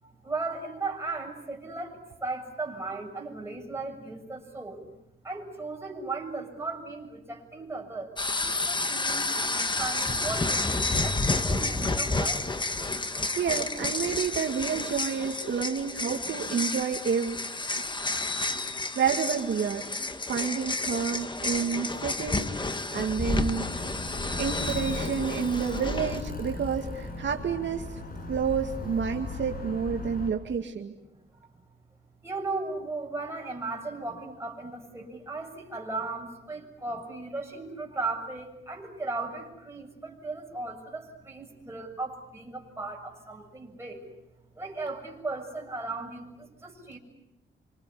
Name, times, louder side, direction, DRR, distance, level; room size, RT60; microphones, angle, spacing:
voice 1, 0.0-4.9 5.2-8.1 8.6-12.5 32.2-44.0 44.6-47.0, right 3 dB, 15° right, 0 dB, 7.1 m, -36 dB
sound 1, 8.2-26.2, left 2 dB, 25° left, 1.5 m, -30 dB
voice 2, 13.4-17.4 18.6-23.7 24.4-28.0 28.3-30.9, right 7 dB, 65° right, 3 dB, 2.1 m, -30 dB
Alarm, 23.5-30.3, left 3 dB, 45° left, 6.2 m, -36 dB
27.0 x 25.5 x 8.5 m, 0.91 s
wide cardioid pair, 120°, 20 cm